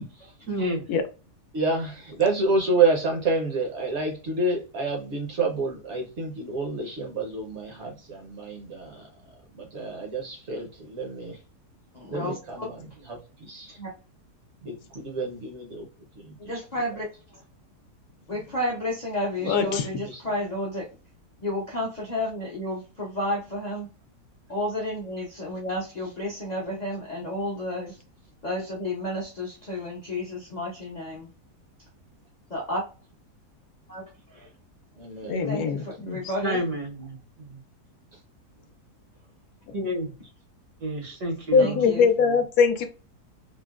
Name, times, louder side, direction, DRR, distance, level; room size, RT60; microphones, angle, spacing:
voice 1, 0.5-0.8 36.4-37.6 39.7-40.1 40.8-41.9, equal, 85° right, -1 dB, 1.8 m, -30 dB
voice 2, 1.5-9.1 9.5-11.4 12.1-13.8 14.6-15.9 16.2-16.6 16.9-17.0 18.3-18.5 19.5-19.8 20.0-20.2 35.0-35.5, right 3 dB, 55° right, 2 dB, 0.8 m, -29 dB
voice 3, 11.9-12.7 13.8-14.0 16.4-17.4 18.3-20.9 21.4-23.9 24.5-28.0 28.4-31.3 32.5-32.9 33.9-34.0 34.3-34.5 35.5-36.6 41.6-42.1, left 1 dB, 50° left, -3 dB, 0.5 m, -31 dB
voice 4, 19.4-19.9 35.2-36.2 41.5-42.9, left 5 dB, 75° left, 7 dB, 1.0 m, -22 dB
3.7 x 2.0 x 2.3 m, 0.33 s
omnidirectional pair, 1.7 m